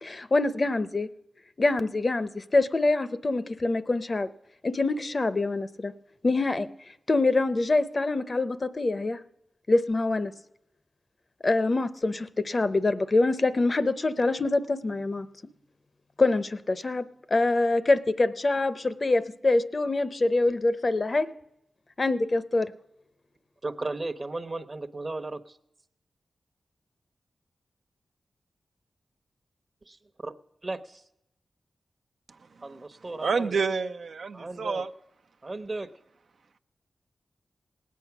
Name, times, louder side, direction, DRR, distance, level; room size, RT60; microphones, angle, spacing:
voice 1, 0.0-1.1 1.6-4.3 4.6-5.9 6.2-6.7 7.1-9.2 9.7-10.3 11.4-15.3 16.2-21.3 22.0-22.7, left 2 dB, 50° left, 14 dB, 0.7 m, -25 dB
voice 2, 23.6-25.6 29.9-30.0 30.2-30.3 30.6-31.0 32.6-33.6 34.3-34.8 35.4-35.9, right 2 dB, 45° right, 9 dB, 0.9 m, -35 dB
voice 3, 33.2-34.9, right 5 dB, 80° right, 7 dB, 0.6 m, -28 dB
18.5 x 8.4 x 5.9 m, 0.84 s
cardioid pair, 45°, 0 cm